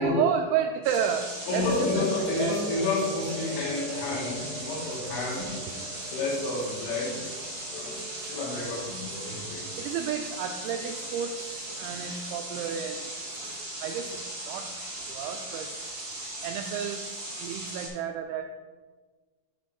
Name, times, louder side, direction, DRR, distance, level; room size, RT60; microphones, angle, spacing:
voice 1, 0.0-1.7 2.0-2.6 9.8-13.1 13.8-14.7 15.1-15.7 16.4-18.4, right 8 dB, 85° right, 4 dB, 2.6 m, -31 dB
sound 1, 0.8-17.9, right 1 dB, 30° right, 2.3 m, -38 dB
voice 2, 1.5-5.8 6.1-7.3 7.7-8.0 8.3-9.7 13.3-13.5 15.2-15.3, left 3 dB, 75° left, -1 dB, 4.0 m, -31 dB
sound 2, 1.5-10.0, left 1 dB, 45° left, 3.7 m, -37 dB
10.5 x 4.2 x 4.7 m, 1.4 s
omnidirectional pair, 5.8 m